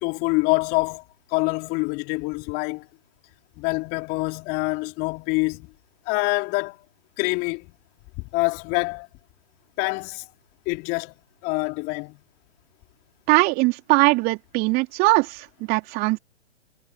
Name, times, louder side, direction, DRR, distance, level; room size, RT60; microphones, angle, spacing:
voice 1, 0.0-1.0 1.3-2.9 3.6-5.7 6.0-6.8 7.2-7.7 8.2-9.1 9.8-10.3 10.6-11.1 11.4-12.2, left 27 dB, 25° left, 3.1 m, -25 dB
voice 2, 13.3-16.2, right 25 dB, 25° right, 3.3 m, -21 dB
figure-of-eight pair, 125°, 35 cm